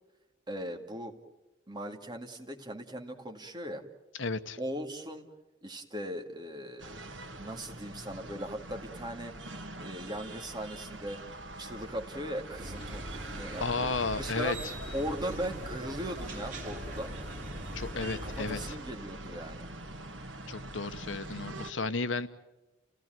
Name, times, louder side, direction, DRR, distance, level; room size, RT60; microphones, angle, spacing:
voice 1, 0.5-1.1 1.7-3.8 4.6-5.3 5.6-7.0 7.3-9.3 9.8-11.2 11.6-13.9 14.2-14.6 14.9-17.1 18.2-19.7, equal, 20° right, 4 dB, 2.2 m, -38 dB
voice 2, 4.2-4.6 13.6-14.6 17.7-18.6 20.5-22.3, left 3 dB, 75° left, 11 dB, 1.2 m, -33 dB
sound 1, 6.8-21.7, right 2 dB, 65° right, 1.8 m, -44 dB
sound 2, 12.5-18.8, right 1 dB, 40° right, 4.0 m, -41 dB
30.0 x 17.0 x 9.2 m, 1.0 s
head